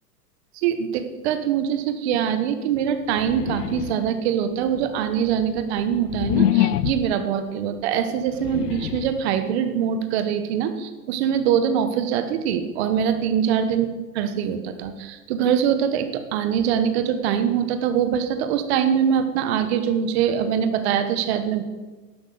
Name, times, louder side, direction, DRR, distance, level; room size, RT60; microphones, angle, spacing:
voice 1, 0.5-13.9 14.1-21.6, right 8 dB, 40° right, 9 dB, 1.3 m, -23 dB
sound 1, 3.1-4.2 4.8-7.3 8.2-9.3, left 12 dB, 75° left, 0.7 m, -25 dB
11.5 x 6.0 x 7.9 m, 1.3 s
hypercardioid pair, 150°, 48 cm